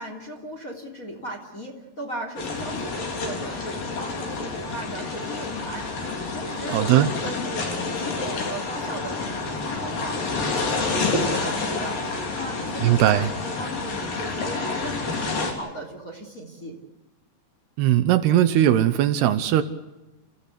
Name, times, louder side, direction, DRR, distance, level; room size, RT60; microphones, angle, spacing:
voice 1, 0.0-5.9 6.3-9.2 9.6-10.2 10.5-12.0 12.3-16.7, equal, 20° left, 2 dB, 2.9 m, -37 dB
sound 1, 2.4-15.5, left 3 dB, 55° left, 5.1 m, -29 dB
voice 2, 6.7-7.1 12.8-13.3 17.8-19.6, right 12 dB, 75° right, 11 dB, 2.9 m, -19 dB
29.0 x 16.0 x 8.3 m, 1.0 s
omnidirectional pair, 4.9 m